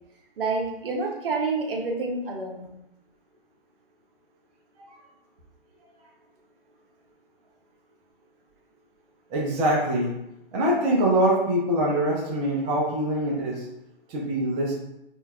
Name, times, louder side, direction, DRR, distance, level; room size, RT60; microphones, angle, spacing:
voice 1, 0.4-2.7, right 3 dB, 70° right, 1 dB, 0.9 m, -28 dB
voice 2, 9.3-10.1 10.5-13.6 14.1-14.7, right 1 dB, 15° right, -4 dB, 0.4 m, -24 dB
5.5 x 2.3 x 2.2 m, 0.86 s
hypercardioid pair, 140°, 29 cm